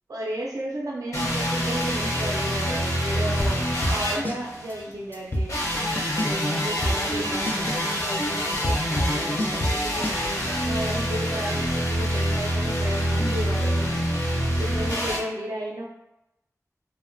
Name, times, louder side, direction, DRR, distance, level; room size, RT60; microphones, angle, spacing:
voice 1, 0.1-5.5 6.2-14.0 14.6-15.9, right 1 dB, 75° right, -4 dB, 0.4 m, -33 dB
sound 1, 1.1-4.9 5.5-15.2, equal, 60° left, 0.8 m, -26 dB
sound 2, 3.4-4.4 4.7-4.8 5.1-6.4 6.8-10.2, equal, 30° left, 0.4 m, -27 dB
2.8 x 2.1 x 2.5 m, 0.88 s
wide cardioid pair, 45°, 6 cm